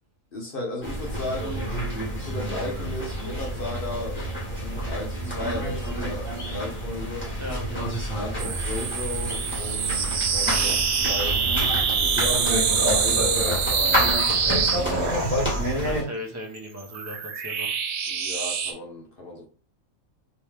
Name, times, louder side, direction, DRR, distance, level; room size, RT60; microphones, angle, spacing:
voice 1, 0.3-1.7 2.3-4.2 4.5-7.3 8.2-11.6 12.0-14.1 14.5-15.4 18.1-19.5, left 1 dB, 50° left, 0.9 m, -35 dB
sound 1, 0.8-16.0, equal, 10° left, 1.5 m, -29 dB
sound 2, 8.4-15.7 16.6-18.7, right 6 dB, 60° right, 0.8 m, -25 dB
voice 2, 15.7-17.8, left 1 dB, 15° right, 0.6 m, -37 dB
3.1 x 3.0 x 3.5 m
omnidirectional pair, 1.4 m